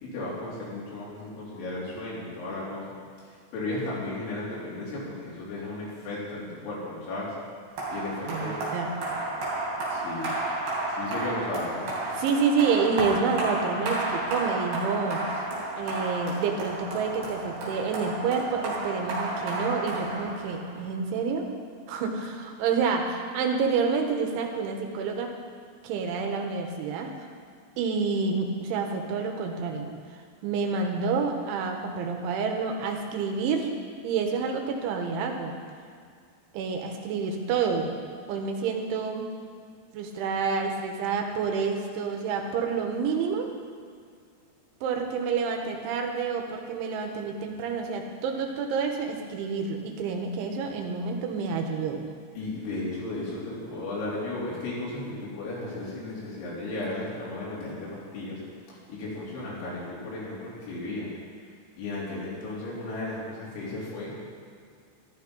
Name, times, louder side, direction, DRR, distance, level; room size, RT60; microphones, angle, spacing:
voice 1, 0.0-2.9 3.5-7.3 7.9-8.6 9.9-10.3 10.9-11.9 52.4-58.4 58.9-61.1 61.8-64.1, left 2 dB, 75° left, -7 dB, 6.1 m, -34 dB
sound 1, 7.8-20.8, right 2 dB, 55° right, 4.9 m, -32 dB
voice 2, 8.3-9.2 12.1-15.2 15.8-21.5 21.9-25.3 25.8-27.1 27.8-29.9 30.4-33.7 34.0-35.6 36.5-37.9 38.3-39.3 39.9-43.5 44.8-52.0, right 5 dB, 85° right, 3 dB, 3.6 m, -28 dB
13.5 x 12.5 x 5.4 m, 2.2 s
omnidirectional pair, 5.3 m